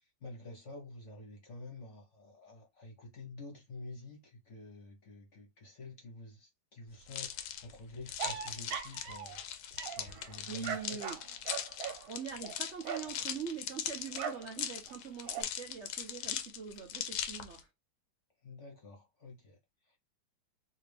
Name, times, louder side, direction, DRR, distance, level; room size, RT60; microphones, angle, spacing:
voice 1, 0.0-9.7 9.9-11.0 18.4-19.6 19.8-20.0, left 2 dB, 45° left, 1.1 m, -49 dB
sound 1, 7.1-17.6, left 9 dB, 80° left, 1.4 m, -40 dB
sound 2, 8.2-9.4 9.8-13.2 14.1-14.5 14.9-15.4, right 8 dB, 85° right, 1.5 m, -40 dB
voice 2, 10.5-11.2 12.1-17.7, right 7 dB, 65° right, 0.7 m, -43 dB
3.3 x 2.8 x 3.3 m
omnidirectional pair, 2.2 m